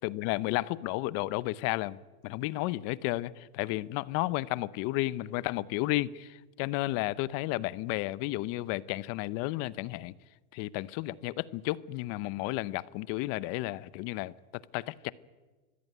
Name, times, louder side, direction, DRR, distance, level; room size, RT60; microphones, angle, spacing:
voice 1, 0.0-2.0 2.2-10.1 10.5-15.1, left 18 dB, 35° left, 0.7 m, -32 dB
24.0 x 15.0 x 9.5 m
supercardioid pair, 140°, 44 cm